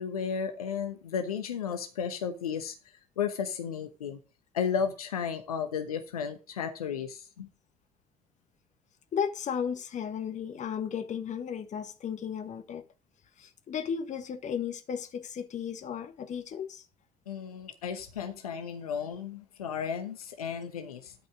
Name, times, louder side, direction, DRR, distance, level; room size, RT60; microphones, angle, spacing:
voice 1, 0.0-2.7 3.2-4.2 4.5-7.5 17.3-21.1, left 7 dB, 80° left, 1.0 m, -33 dB
voice 2, 9.1-12.8 13.4-16.8, left 7 dB, 40° left, 1.6 m, -34 dB
12.5 x 5.3 x 5.0 m
figure-of-eight pair, 60°, 19 cm